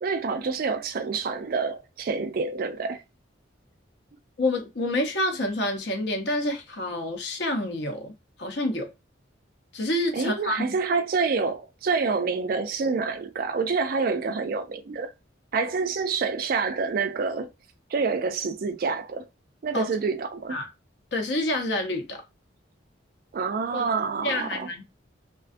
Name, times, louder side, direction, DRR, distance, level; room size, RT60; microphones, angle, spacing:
voice 1, 0.0-3.0 10.1-15.1 15.5-17.5 17.9-19.3 19.6-20.6 23.3-24.7, right 4 dB, 45° right, 0.3 m, -27 dB
voice 2, 4.4-8.1 8.4-8.9 9.7-10.7 19.7-19.9 20.5-20.7 21.1-22.2 23.7-23.9 24.2-24.8, left 1 dB, 60° left, 0.7 m, -28 dB
2.5 x 2.3 x 2.5 m
head